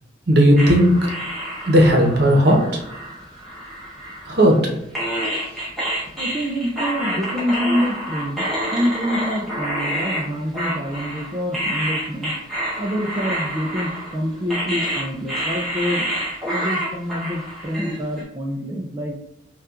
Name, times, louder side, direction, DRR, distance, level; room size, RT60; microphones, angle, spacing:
voice 1, 0.3-1.1 1.7-2.6 4.3-4.6, equal, 60° right, 0 dB, 0.8 m, -14 dB
sound 1, 0.6-4.6 4.9-18.2, equal, ahead, 1.2 m, -28 dB
voice 2, 6.2-12.3 12.8-16.1 16.5-19.2, equal, 20° right, -2 dB, 0.3 m, -26 dB
5.5 x 2.3 x 2.4 m, 0.80 s
head